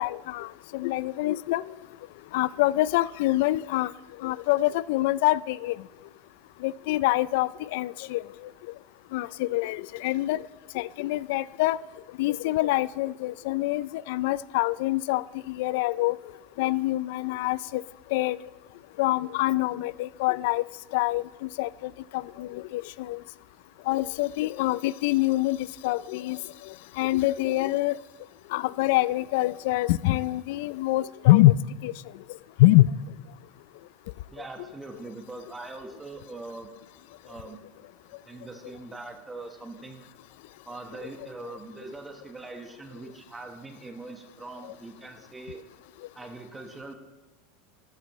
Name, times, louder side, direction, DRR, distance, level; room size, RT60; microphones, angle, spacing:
voice 1, 0.0-1.6 2.3-3.9 4.2-5.8 6.6-8.2 9.1-10.4 10.7-11.8 12.2-16.1 16.6-17.8 18.1-18.4 19.0-20.6 20.9-23.2 23.9-26.4 27.0-28.0 28.5-31.5 31.8-31.9 32.6-32.9, left 17 dB, 70° left, 0.3 m, -25 dB
voice 2, 34.3-36.7 37.2-37.6 38.2-40.0 40.6-45.6 46.1-46.9, right 3 dB, 15° right, 1.2 m, -42 dB
13.5 x 13.0 x 3.1 m
supercardioid pair, 140°, 0 cm